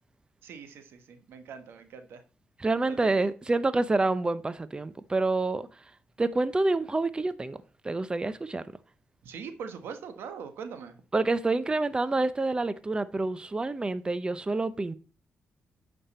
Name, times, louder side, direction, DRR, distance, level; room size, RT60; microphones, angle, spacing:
voice 1, 0.4-2.2 2.9-3.1 9.2-11.0, right 6 dB, 85° right, 1.3 m, -42 dB
voice 2, 2.6-5.7 6.2-7.6 7.8-8.6 11.1-14.9, right 2 dB, 25° right, 0.6 m, -27 dB
8.6 x 5.3 x 4.2 m
cardioid pair, 65°, 4 cm